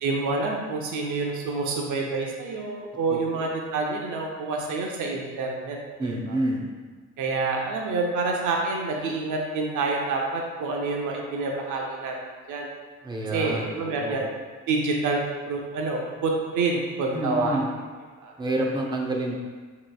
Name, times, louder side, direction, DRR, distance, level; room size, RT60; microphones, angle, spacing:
voice 1, 0.0-6.4 7.2-12.1 12.5-12.7 13.3-14.3 14.7-15.2 15.5-17.6 18.2-18.3, right 3 dB, 75° right, 0 dB, 0.7 m, -27 dB
voice 2, 3.1-3.4 6.0-6.6 13.0-14.2 17.1-17.7 18.4-19.4, right 1 dB, 15° right, -1 dB, 0.7 m, -28 dB
6.4 x 3.1 x 2.3 m, 1.5 s
cardioid pair, 90°, 30 cm